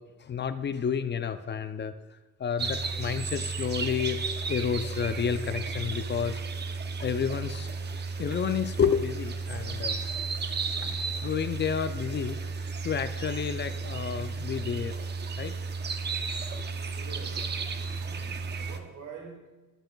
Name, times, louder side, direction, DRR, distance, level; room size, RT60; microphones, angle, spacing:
voice 1, 0.0-1.9 2.4-4.2 4.5-6.4 7.0-7.7 8.2-10.0 10.8-12.4 12.8-15.0 15.4-15.5 16.5-16.6, left 7 dB, 35° left, 11 dB, 0.5 m, -30 dB
sound 1, 2.6-18.8, right 4 dB, 35° right, 0.7 m, -33 dB
voice 2, 17.0-17.5 18.0-19.7, right 5 dB, 75° right, 0 dB, 2.1 m, -46 dB
11.0 x 7.8 x 2.3 m, 1.2 s
cardioid pair, 90°, 30 cm